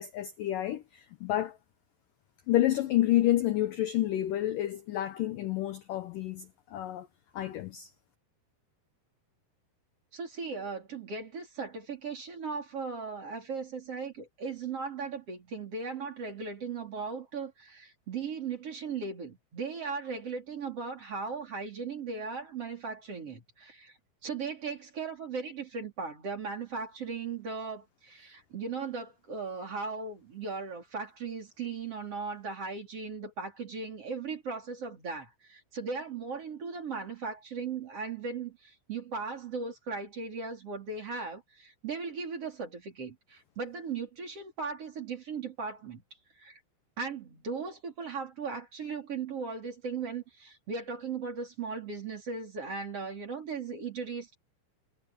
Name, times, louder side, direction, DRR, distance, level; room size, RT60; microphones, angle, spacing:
voice 1, 0.0-1.6 2.5-7.1 7.3-7.9, left 14 dB, 80° left, 1.9 m, -29 dB
voice 2, 10.1-24.0 24.2-46.0 46.4-46.6 47.0-54.3, right 5 dB, 35° right, 4.6 m, -37 dB
omnidirectional pair, 5.2 m